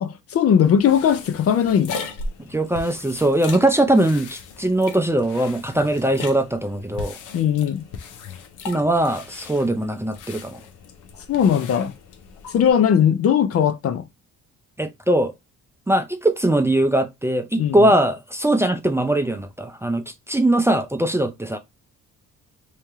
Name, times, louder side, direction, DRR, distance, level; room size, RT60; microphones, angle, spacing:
voice 1, 0.0-2.1 7.3-7.9 11.3-11.9 12.5-14.0 17.6-17.9, left 8 dB, 50° left, 0.5 m, -19 dB
sound 1, 0.6-12.7, left 4 dB, 85° left, 0.8 m, -38 dB
voice 2, 2.5-7.2 8.6-10.6 14.8-15.3 15.9-21.6, right 1 dB, 10° right, 0.5 m, -21 dB
3.2 x 2.9 x 3.4 m
cardioid pair, 90°, 30 cm